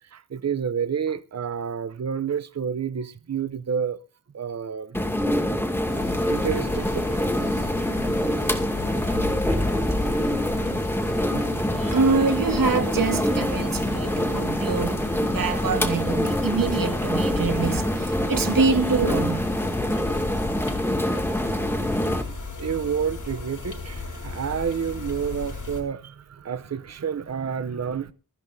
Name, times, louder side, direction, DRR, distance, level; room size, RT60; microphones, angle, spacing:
voice 1, 0.1-4.0 4.3-5.0 6.3-7.7 9.1-9.2 9.5-9.6 11.3-11.8 15.5-15.6 22.6-28.1, right 7 dB, 50° right, 0.7 m, -29 dB
sound 1, 4.9-22.2, left 1 dB, 5° left, 2.4 m, -25 dB
sound 2, 5.9-25.8, left 3 dB, 65° left, 3.8 m, -36 dB
voice 2, 11.5-19.5, right 5 dB, 90° right, 1.4 m, -25 dB
23.0 x 14.0 x 2.7 m
wide cardioid pair, 75°, 33 cm